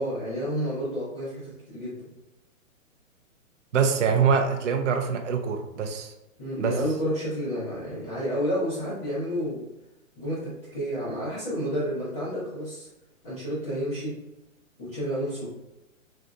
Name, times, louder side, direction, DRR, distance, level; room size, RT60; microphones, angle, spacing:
voice 1, 0.0-2.1 6.4-9.6 10.1-12.9 13.2-14.2 14.8-15.5, equal, 20° left, -15 dB, 0.8 m, -30 dB
voice 2, 3.7-6.1 6.6-6.8, right 6 dB, 60° right, 4 dB, 0.5 m, -24 dB
3.4 x 2.6 x 2.4 m, 0.99 s
hypercardioid pair, 180°, 41 cm